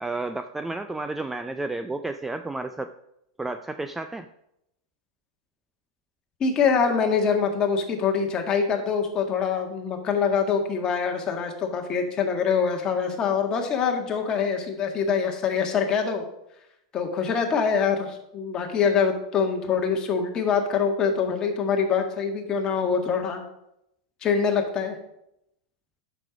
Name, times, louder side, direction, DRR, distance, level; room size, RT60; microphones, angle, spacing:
voice 1, 0.0-2.9 3.4-4.3, right 2 dB, 5° right, 9 dB, 0.4 m, -31 dB
voice 2, 6.4-16.2 16.9-23.4 24.2-25.0, left 6 dB, 25° left, 3 dB, 1.7 m, -24 dB
9.8 x 6.7 x 5.0 m, 0.81 s
supercardioid pair, 140°, 3 cm